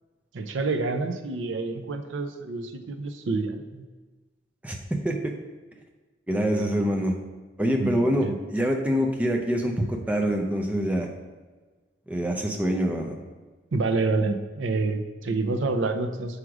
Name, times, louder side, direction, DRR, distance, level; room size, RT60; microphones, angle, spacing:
voice 1, 0.3-3.8 7.8-8.3 13.7-16.4, right 3 dB, 80° right, 8 dB, 0.6 m, -28 dB
voice 2, 6.3-7.2 7.6-11.1 12.1-13.2, equal, 10° right, 2 dB, 0.5 m, -25 dB
6.2 x 4.9 x 4.8 m, 1.3 s
head